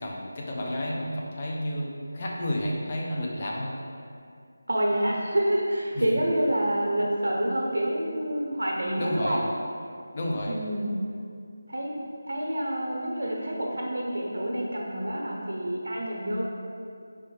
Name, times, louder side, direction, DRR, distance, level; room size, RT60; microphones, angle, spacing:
voice 1, 0.0-1.9 2.1-3.7 5.9-6.0 9.0-9.4 10.1-10.6, left 1 dB, 35° left, -2 dB, 0.5 m, -31 dB
voice 2, 4.7-9.4 10.5-10.9 11.7-11.9 12.2-16.4, right 1 dB, 90° right, -2 dB, 0.8 m, -27 dB
4.6 x 2.1 x 3.1 m, 2.4 s
figure-of-eight pair, 170°, 0 cm